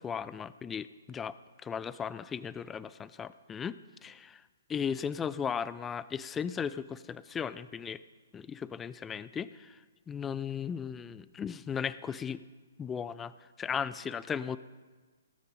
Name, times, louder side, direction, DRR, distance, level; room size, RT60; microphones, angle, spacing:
voice 1, 0.0-1.4 1.6-4.4 4.7-8.0 8.3-12.4 12.8-14.6, left 7 dB, 15° left, 17 dB, 0.3 m, -36 dB
19.0 x 8.9 x 4.2 m, 1.4 s
figure-of-eight pair, 120°, 0 cm